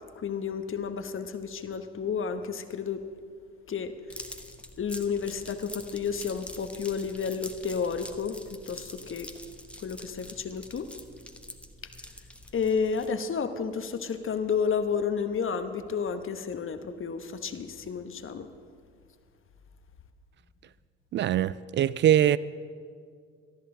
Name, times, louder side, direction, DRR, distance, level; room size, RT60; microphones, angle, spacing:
voice 1, 0.1-3.0 3.7-3.9 4.8-8.4 8.7-9.3 9.8-10.9 12.5-18.5, left 6 dB, 35° left, 1.1 m, -31 dB
sound 1, 4.1-13.3, left 1 dB, 5° left, 1.1 m, -45 dB
voice 2, 21.1-22.4, right 11 dB, 35° right, 0.4 m, -22 dB
19.0 x 13.0 x 3.8 m
figure-of-eight pair, 50°, 36 cm